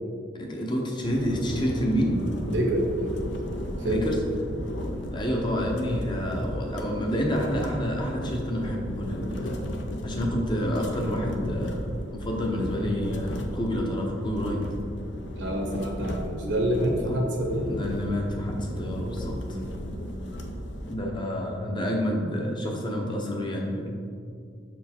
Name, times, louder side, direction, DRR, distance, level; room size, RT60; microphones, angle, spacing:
voice 1, 0.3-2.2 3.8-4.2 5.1-9.7 10.0-11.8 12.1-14.7 16.9-17.2 17.6-19.6 20.9-23.9, equal, 25° left, 0 dB, 0.8 m, -29 dB
sound 1, 1.0-21.0, left 1 dB, 65° left, 0.7 m, -35 dB
voice 2, 2.5-3.3 3.8-4.0 15.4-17.7 19.5-19.8, right 1 dB, 70° right, 1 dB, 1.1 m, -27 dB
6.4 x 4.6 x 4.3 m, 2.3 s
head